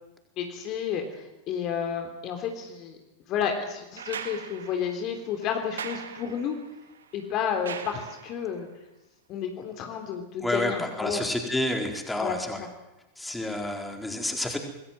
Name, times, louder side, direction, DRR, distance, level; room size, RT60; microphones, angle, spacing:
voice 1, 0.4-3.0 3.3-6.6 7.1-8.7 9.3-11.2 12.2-12.4, left 7 dB, 35° left, 5 dB, 3.4 m, -31 dB
sound 1, 4.0-8.6 10.1-10.2, right 7 dB, 65° right, 2.1 m, -41 dB
voice 2, 10.4-12.6 13.2-14.6, left 1 dB, 5° left, 3 dB, 4.5 m, -29 dB
26.5 x 20.5 x 7.8 m, 1.0 s
figure-of-eight pair, 90°, 0 cm